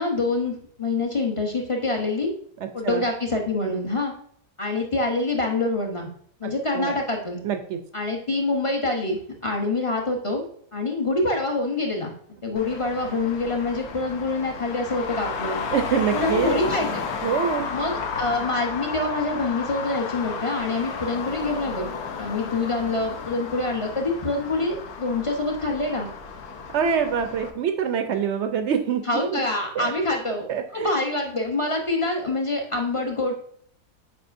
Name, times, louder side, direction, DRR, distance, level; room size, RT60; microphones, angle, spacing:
voice 1, 0.0-2.3 2.7-4.1 4.6-6.1 6.4-7.4 7.9-10.5 10.7-12.1 12.4-15.6 16.1-17.0 17.7-21.9 22.2-26.1 29.1-30.4 30.7-33.3, left 2 dB, 35° left, 1 dB, 0.5 m, -26 dB
voice 2, 2.6-3.0 6.4-7.0 7.4-7.8 15.7-16.8 17.2-17.7 26.7-29.4 29.7-29.9 30.5-30.9, right 7 dB, 70° right, 7 dB, 0.6 m, -25 dB
Traffic noise roadway noise, 12.6-27.5, left 5 dB, 70° left, 1.2 m, -33 dB
7.8 x 4.9 x 2.5 m, 0.62 s
omnidirectional pair, 1.6 m